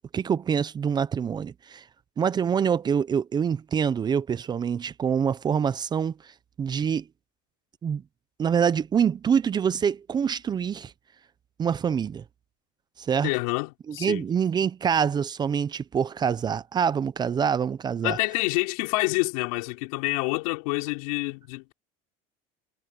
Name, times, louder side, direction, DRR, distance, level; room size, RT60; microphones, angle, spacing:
voice 1, 0.1-1.8 2.2-6.3 6.6-7.1 7.8-8.0 8.4-10.9 11.6-12.2 13.0-13.3 13.9-18.2, right 7 dB, 25° right, 0.6 m, -25 dB
voice 2, 13.2-14.2 18.0-21.7, left 26 dB, 90° left, 3.8 m, -27 dB
cardioid pair, 135°, 18 cm